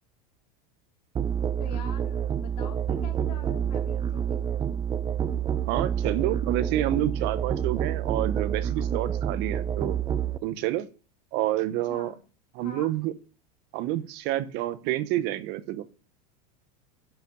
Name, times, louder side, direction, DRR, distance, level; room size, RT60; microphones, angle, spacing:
Musical instrument, 1.1-10.4, right 9 dB, 20° right, 0.5 m, -28 dB
voice 1, 1.6-4.6 6.7-7.5 11.9-12.2 12.6-12.9, left 7 dB, 75° left, 1 dB, 3.0 m, -45 dB
voice 2, 5.6-10.0 10.4-10.9 11.3-12.1 12.5-13.1 13.7-15.8, right 14 dB, 55° right, 13 dB, 1.0 m, -28 dB
10.0 x 5.8 x 5.3 m, 0.37 s
supercardioid pair, 110°, 21 cm